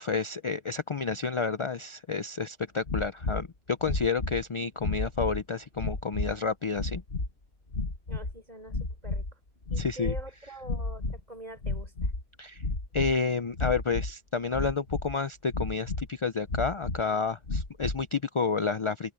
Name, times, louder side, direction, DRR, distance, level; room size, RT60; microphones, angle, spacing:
voice 1, 0.0-7.0 9.8-10.2 12.4-12.6 12.9-19.1, left 5 dB, 35° left, 0.6 m, -30 dB
sound 1, 2.9-3.5 3.8-4.4 4.8-5.4 5.8-6.4 6.7-7.3 7.7-8.4 8.7-9.3 9.6-10.3 10.6-11.2 11.6-12.2 12.6-13.2 13.5-14.1 14.5-15.1 15.5-16.1 16.5-17.0 17.4-18.0, left 2 dB, 70° left, 2.4 m, -32 dB
voice 2, 8.1-9.3 9.7-11.9, right 1 dB, 40° right, 3.9 m, -44 dB
open air
omnidirectional pair, 1.1 m